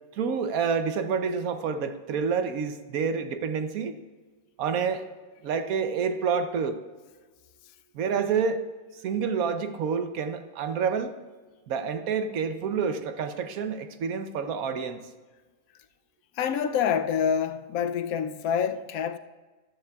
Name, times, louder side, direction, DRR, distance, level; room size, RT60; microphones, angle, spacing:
voice 1, 0.1-3.9 4.6-5.1 5.4-6.8 7.9-8.6 8.9-11.1 11.7-15.0, right 6 dB, 80° right, 1.2 m, -28 dB
voice 2, 16.3-19.2, left 7 dB, 80° left, 1.0 m, -27 dB
13.5 x 12.5 x 2.3 m
omnidirectional pair, 1.5 m